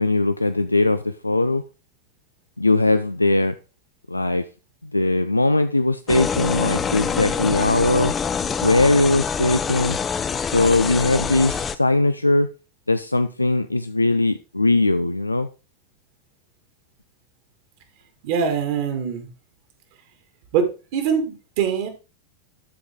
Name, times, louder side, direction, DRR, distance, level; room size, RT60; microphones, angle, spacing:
voice 1, 0.0-1.6 2.6-3.6 4.1-4.5 4.8-8.1 8.6-10.0 10.4-12.5 12.9-15.5, left 2 dB, 85° left, 0.4 m, -20 dB
sound 1, 6.1-11.7, left 6 dB, 20° left, 0.6 m, -25 dB
voice 2, 18.2-19.3 20.5-21.9, right 7 dB, 50° right, 2.1 m, -23 dB
12.5 x 4.8 x 3.6 m
figure-of-eight pair, 90°, 0 cm